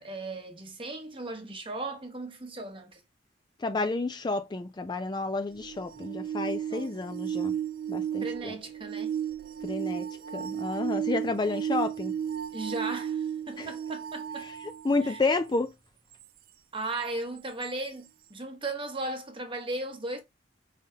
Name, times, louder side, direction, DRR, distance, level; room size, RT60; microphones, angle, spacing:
voice 1, 0.0-3.0 6.7-6.9 8.2-9.1 12.5-14.5 15.0-15.2 16.7-20.2, right 2 dB, 30° right, 1.0 m, -36 dB
voice 2, 3.6-7.6 7.9-8.6 9.6-10.1 10.3-12.1 13.6-13.7 14.4-15.7, left 3 dB, 25° left, 0.4 m, -30 dB
sound 1, 5.5-15.3 17.6-17.7, right 9 dB, 50° right, 0.3 m, -34 dB
5.3 x 3.3 x 2.7 m
head